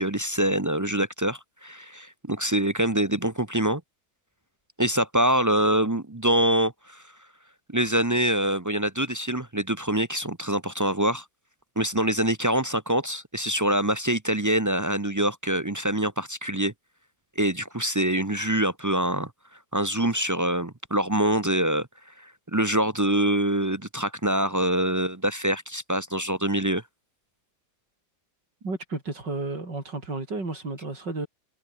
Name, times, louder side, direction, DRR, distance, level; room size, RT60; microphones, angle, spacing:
voice 1, 0.0-3.8 4.8-7.0 7.7-11.2 11.8-16.7 17.4-19.3 19.7-26.8, right 1 dB, 25° right, 0.4 m, -25 dB
voice 2, 28.6-31.3, right 3 dB, 60° right, 6.6 m, -32 dB
omnidirectional pair, 2.1 m